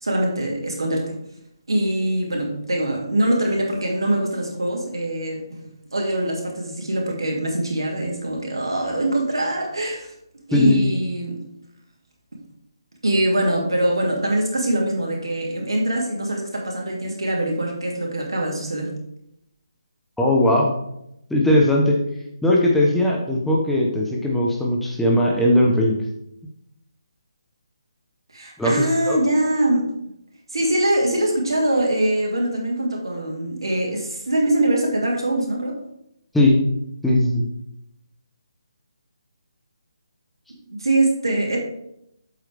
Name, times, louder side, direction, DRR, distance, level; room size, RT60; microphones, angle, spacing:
voice 1, 0.0-1.1 1.7-5.6 5.9-10.1 10.5-11.4 13.0-18.9 28.3-29.9 30.5-35.8 40.8-41.6, right 1 dB, 75° right, 0 dB, 2.8 m, -23 dB
voice 2, 10.5-10.8 20.2-20.7 21.3-22.0 22.4-26.0 28.6-29.2 36.3-36.6 37.0-37.4, left 1 dB, 5° left, -3 dB, 1.1 m, -18 dB
8.0 x 7.8 x 3.5 m, 0.79 s
figure-of-eight pair, 150°, 3 cm